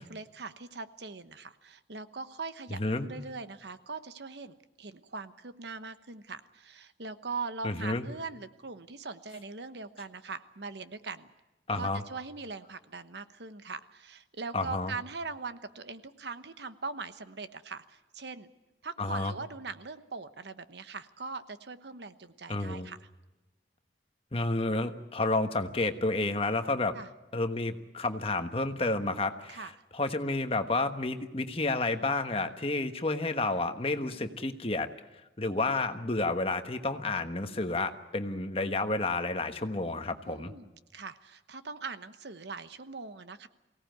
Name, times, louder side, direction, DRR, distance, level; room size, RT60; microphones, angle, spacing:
voice 1, 0.0-11.3 11.7-18.5 18.8-23.0 26.9-27.1 29.5-29.7 34.1-34.4 40.3-43.5, right 4 dB, 70° right, 11 dB, 1.1 m, -41 dB
voice 2, 2.8-3.1 7.6-8.1 11.7-12.0 14.5-14.9 19.0-19.3 22.5-22.9 24.3-26.9 27.3-29.6 29.9-34.9 35.4-40.5, left 2 dB, 30° left, 8 dB, 1.3 m, -30 dB
23.5 x 17.5 x 9.3 m, 1.1 s
head